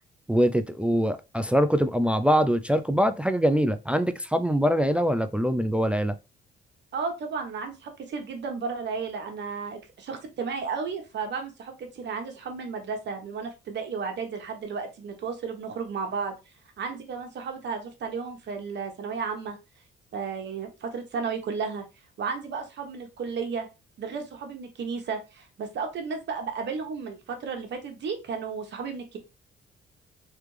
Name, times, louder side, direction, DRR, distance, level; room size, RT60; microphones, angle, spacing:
voice 1, 0.3-6.2, equal, 5° right, 0.3 m, -23 dB
voice 2, 6.9-16.3 16.8-19.6 20.1-21.8 22.2-23.7 24.0-29.2, right 5 dB, 65° right, 1.2 m, -33 dB
3.3 x 3.2 x 3.2 m
cardioid pair, 90°, 20 cm